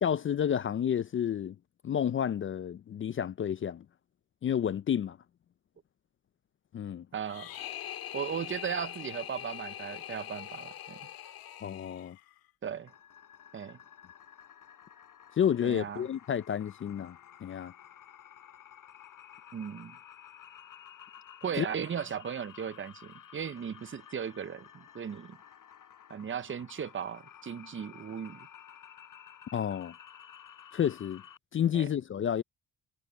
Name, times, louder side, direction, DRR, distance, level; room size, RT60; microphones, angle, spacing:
voice 1, 0.0-1.6 1.8-3.9 4.4-5.2 6.7-7.1 11.6-12.2 15.3-17.7 21.6-21.7 29.5-29.9 30.7-31.2 31.5-32.4, left 9 dB, 35° left, 0.4 m, -30 dB
voice 2, 7.1-7.5 8.1-11.0 12.6-12.9 13.5-13.8 15.6-16.0 19.5-20.0 21.4-25.4 26.1-28.5 31.7-31.9, right 8 dB, 35° right, 0.6 m, -37 dB
sound 1, 7.2-12.4, left 12 dB, 85° left, 1.8 m, -43 dB
sound 2, 12.6-31.4, left 9 dB, 65° left, 7.4 m, -53 dB
cardioid pair, 95°, 35 cm